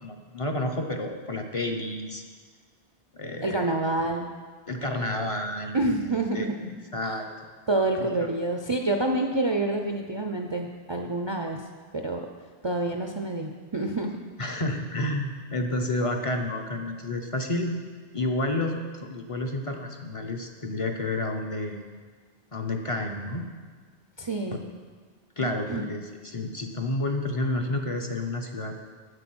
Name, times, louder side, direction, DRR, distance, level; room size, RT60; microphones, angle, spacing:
voice 1, 0.0-2.2 3.1-3.6 4.7-5.9 6.3-6.5 6.9-7.3 8.2-8.3 14.4-17.7 18.1-18.8 19.1-21.8 22.5-23.5 24.5-24.6 25.4-28.8, left 2 dB, 35° left, 3 dB, 0.7 m, -30 dB
voice 2, 3.4-4.3 5.7-6.7 7.7-11.6 11.9-12.3 12.6-14.2 24.2-24.6 25.4-25.9, right 2 dB, 35° right, 3 dB, 0.5 m, -27 dB
7.9 x 7.9 x 6.1 m, 1.5 s
omnidirectional pair, 1.1 m